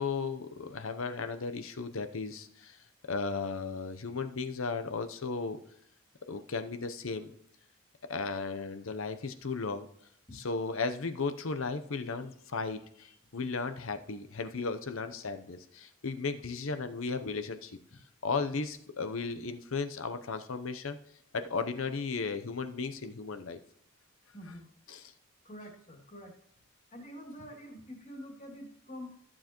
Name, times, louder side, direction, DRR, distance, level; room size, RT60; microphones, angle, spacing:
voice 1, 0.0-2.5 3.1-5.6 6.3-7.3 8.1-9.9 10.3-12.8 13.3-17.7 18.2-21.0 21.3-23.6 24.9-25.0, left 4 dB, 65° left, 9 dB, 0.8 m, -35 dB
voice 2, 24.3-24.7 25.4-26.3 26.9-29.1, equal, 35° left, 1 dB, 2.4 m, -46 dB
14.0 x 7.4 x 3.0 m, 0.69 s
head